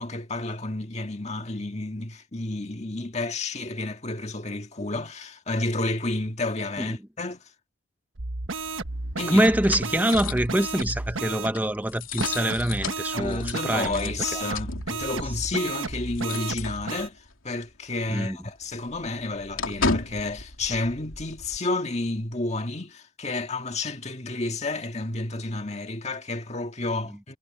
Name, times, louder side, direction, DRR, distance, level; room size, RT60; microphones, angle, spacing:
voice 1, 0.0-7.4 9.2-9.5 13.1-27.4, left 2 dB, 35° left, 1.8 m, -31 dB
sound 1, 8.2-11.5 12.2-17.1, right 3 dB, 75° right, 1.3 m, -33 dB
sound 2, 8.5-17.3 17.6-17.8 18.1-21.6, left 4 dB, 80° left, 3.3 m, -35 dB
voice 2, 9.3-14.4 18.1-18.4, right 1 dB, 10° right, 0.9 m, -25 dB
head